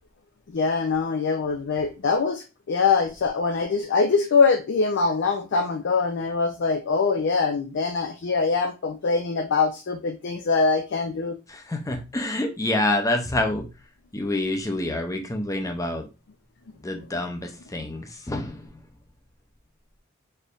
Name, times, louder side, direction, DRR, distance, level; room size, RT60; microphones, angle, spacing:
voice 1, 0.5-11.4, left 4 dB, 55° left, 5 dB, 0.5 m, -23 dB
voice 2, 11.5-13.7 14.1-16.1 16.8-18.7, left 1 dB, 15° left, 4 dB, 0.6 m, -27 dB
4.3 x 3.2 x 2.4 m, 0.28 s
head